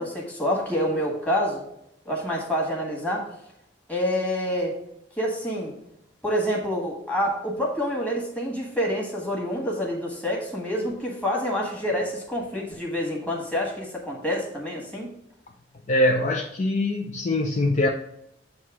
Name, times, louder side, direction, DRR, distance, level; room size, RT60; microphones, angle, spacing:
voice 1, 0.0-1.6 2.0-3.2 3.9-4.7 5.2-5.7 6.2-15.1, equal, 10° left, -2 dB, 1.5 m, -27 dB
voice 2, 15.9-17.9, left 1 dB, 40° left, 2 dB, 0.5 m, -23 dB
7.8 x 2.8 x 6.0 m, 0.80 s
head